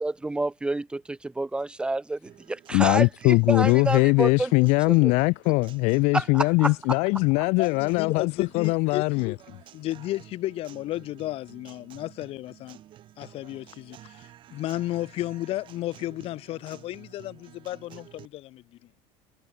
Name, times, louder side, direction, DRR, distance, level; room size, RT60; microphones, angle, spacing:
voice 1, 0.0-4.5 4.9-5.1 6.1-7.0, right 2 dB, 5° right, 3.1 m, -29 dB
Guitar, 2.2-18.3, right 12 dB, 40° right, 6.1 m, -52 dB
voice 2, 2.7-9.3, left 27 dB, 60° left, 0.5 m, -21 dB
voice 3, 7.6-9.4 9.7-12.8 13.2-18.6, left 15 dB, 45° left, 2.2 m, -33 dB
cardioid pair, 170°, 13 cm